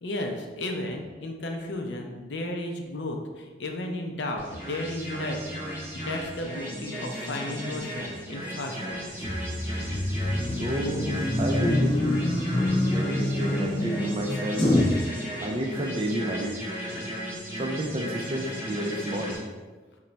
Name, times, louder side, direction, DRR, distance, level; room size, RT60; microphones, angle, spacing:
voice 1, 0.0-9.1, left 1 dB, 75° left, 2 dB, 0.5 m, -34 dB
sound 1, 4.4-19.4, equal, 10° right, 0.7 m, -36 dB
sound 2, 9.2-15.0, left 1 dB, 25° left, 0.5 m, -26 dB
voice 2, 10.6-12.2 12.9-14.7 15.4-16.6 17.6-19.4, right 1 dB, 30° right, 2 dB, 0.3 m, -30 dB
3.0 x 2.2 x 3.9 m, 1.3 s
head